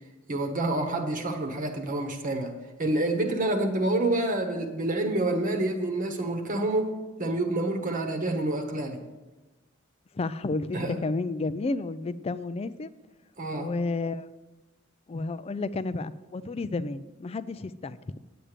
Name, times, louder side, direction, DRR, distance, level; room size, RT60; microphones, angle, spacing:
voice 1, 0.3-2.5 2.8-6.9 7.2-9.0 10.7-11.0 13.4-13.7, right 2 dB, 40° right, 4 dB, 1.1 m, -28 dB
voice 2, 10.1-12.9 13.5-14.3 15.1-18.2, left 3 dB, 30° left, 14 dB, 0.4 m, -31 dB
8.8 x 8.7 x 5.0 m, 1.1 s
head